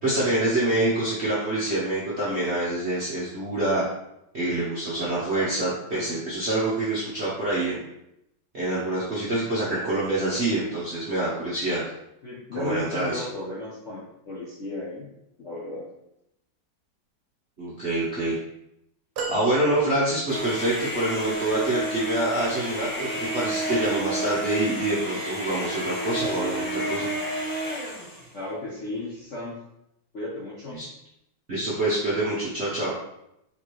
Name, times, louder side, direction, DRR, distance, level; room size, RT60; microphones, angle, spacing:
voice 1, 0.0-3.8 4.3-7.8 8.5-11.8 12.5-13.2 17.6-18.4 19.3-27.1 30.7-30.9 31.5-33.0, right 1 dB, 50° right, -8 dB, 0.8 m, -26 dB
voice 2, 12.2-15.1 15.4-15.9 28.3-29.6 30.1-30.8, left 2 dB, 50° left, -7 dB, 0.9 m, -35 dB
sound 1, 19.2-20.6 21.3-21.4, right 4 dB, 85° right, 1.5 m, -35 dB
sound 2, 20.3-28.3, right 1 dB, 10° left, 1.6 m, -30 dB
4.8 x 3.3 x 3.0 m, 0.82 s
omnidirectional pair, 2.3 m